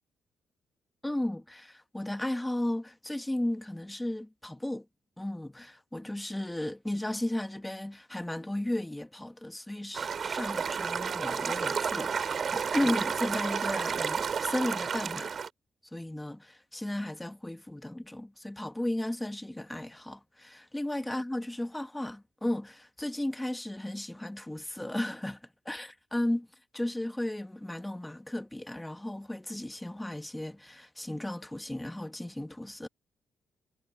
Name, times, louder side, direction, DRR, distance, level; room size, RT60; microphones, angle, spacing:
voice 1, 1.0-4.8 5.2-15.4 15.9-25.4 25.7-26.5 26.7-32.9, left 1 dB, 10° left, 1.7 m, -35 dB
sound 1, 9.9-15.5, right 6 dB, 45° right, 4.2 m, -31 dB
cardioid pair, 90°, 0 cm